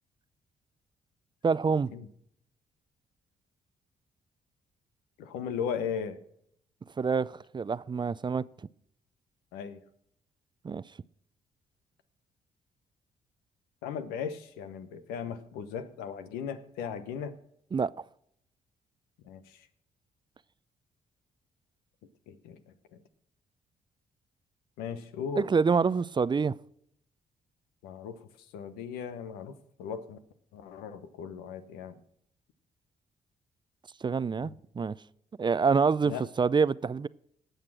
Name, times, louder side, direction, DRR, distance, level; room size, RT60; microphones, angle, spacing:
voice 1, 1.4-1.9 7.0-8.4 10.6-10.8 17.7-17.9 25.4-26.5 34.0-35.0 35.4-37.1, right 5 dB, 30° right, 0.5 m, -26 dB
voice 2, 5.2-6.2 9.5-9.8 13.8-17.4 19.2-19.4 22.3-22.6 24.8-25.5 27.8-28.2 28.5-30.2 30.5-32.0 34.4-34.5 36.0-36.2, left 7 dB, 85° left, 0.9 m, -37 dB
18.0 x 6.6 x 6.1 m
supercardioid pair, 55°, 15 cm